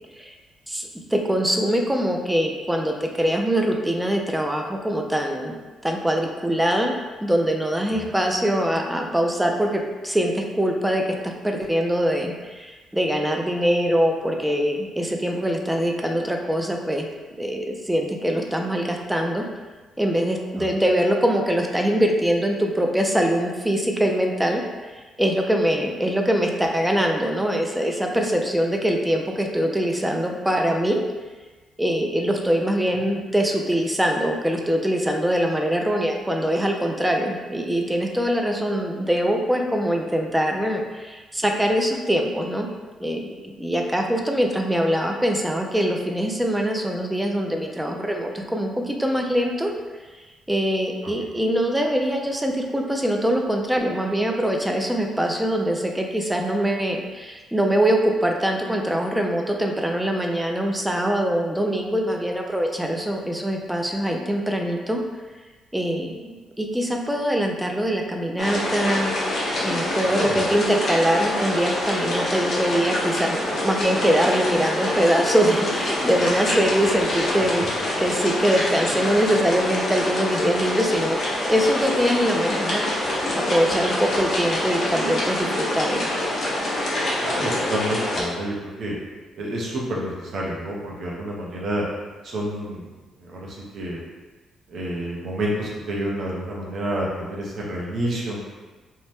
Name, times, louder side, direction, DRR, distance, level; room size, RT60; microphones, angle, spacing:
voice 1, 0.7-5.5 5.8-6.9 7.2-17.1 17.3-19.4 20.0-24.6 24.9-31.0 31.8-42.7 43.0-49.7 50.5-65.0 65.7-69.1 69.6-77.7 78.0-83.2 83.5-86.1, equal, 5° right, 2 dB, 0.4 m, -23 dB
sound 1, 68.4-88.2, left 1 dB, 50° left, 0.7 m, -26 dB
voice 2, 70.0-70.4 87.2-88.9 89.4-91.8 92.2-92.9 93.2-94.0 94.7-98.4, right 1 dB, 60° right, -3 dB, 0.7 m, -29 dB
2.7 x 2.1 x 3.3 m, 1.3 s
cardioid pair, 90°, 0 cm